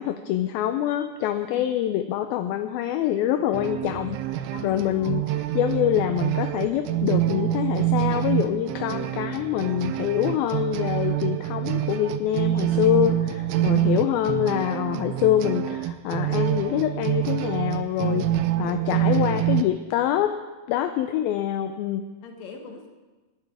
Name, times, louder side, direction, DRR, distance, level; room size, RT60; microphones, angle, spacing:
voice 1, 0.0-18.3 18.6-20.4 20.7-22.1, left 11 dB, 80° left, 9 dB, 2.3 m, -25 dB
sound 1, 3.5-19.6, right 12 dB, 80° right, 2.7 m, -26 dB
voice 2, 4.5-5.2 13.5-14.0 18.0-18.5 19.0-19.1 22.2-22.9, left 5 dB, 50° left, 3 dB, 2.6 m, -41 dB
25.0 x 10.5 x 4.9 m, 1.2 s
omnidirectional pair, 4.7 m